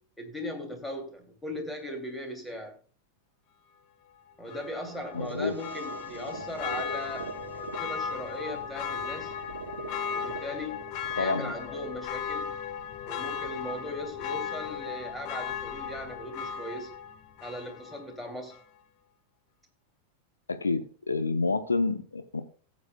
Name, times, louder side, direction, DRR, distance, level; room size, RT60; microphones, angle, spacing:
voice 1, 0.2-2.7 4.4-9.3 10.1-10.9 11.1-12.5 13.1-16.9 17.4-18.6, left 1 dB, 5° left, 4 dB, 2.6 m, -38 dB
Church bell, 4.5-18.1 18.5-18.6, left 7 dB, 45° left, 1.0 m, -36 dB
sound 1, 4.9-12.9, right 5 dB, 70° right, 0.9 m, -44 dB
voice 2, 5.1-5.5 11.2-11.5 20.5-22.4, left 3 dB, 75° left, 10 dB, 0.8 m, -28 dB
16.0 x 8.3 x 2.3 m, 0.39 s
figure-of-eight pair, 90°, 0 cm